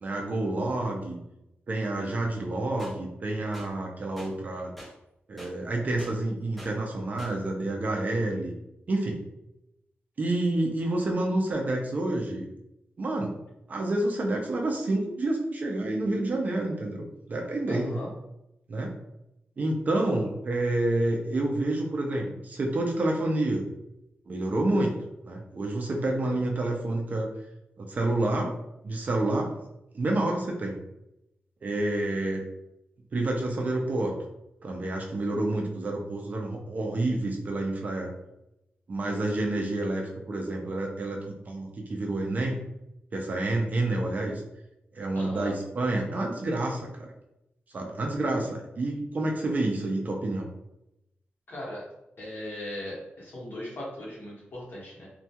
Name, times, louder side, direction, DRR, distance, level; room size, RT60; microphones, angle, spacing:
voice 1, 0.0-1.2 1.7-4.8 5.3-8.5 8.9-9.2 10.2-12.5 13.0-13.3 13.7-18.0 18.7-18.9 19.6-23.6 24.3-25.0 25.2-27.3 27.8-28.5 28.8-29.5 29.9-30.8 31.6-32.4 33.1-34.1 34.6-38.1 38.9-42.6 43.1-44.4 44.9-47.1 47.7-50.5, right 2 dB, 40° right, 1 dB, 0.4 m, -28 dB
sound 1, 2.8-2.9 3.5-3.7 4.2-4.3 4.8-4.9 5.4-5.5 6.0-6.1 6.6-6.7 7.2-7.3, equal, 5° left, 0.8 m, -44 dB
voice 2, 17.7-18.1 45.1-45.5 51.5-51.8 52.2-55.1, left 1 dB, 55° left, -5 dB, 0.9 m, -38 dB
2.2 x 2.2 x 2.7 m, 0.87 s
wide cardioid pair, 160°, 4 cm